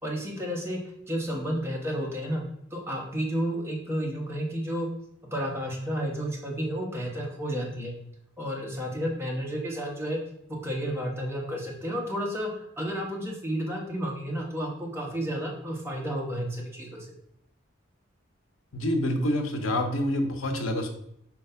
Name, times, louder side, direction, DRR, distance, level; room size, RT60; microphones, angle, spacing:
voice 1, 0.0-0.8 1.1-2.4 2.7-4.9 5.3-7.9 8.4-10.2 10.5-17.1, equal, 15° right, -2 dB, 1.3 m, -31 dB
voice 2, 18.7-20.9, left 1 dB, 85° left, 5 dB, 0.9 m, -27 dB
4.6 x 4.2 x 5.6 m, 0.72 s
head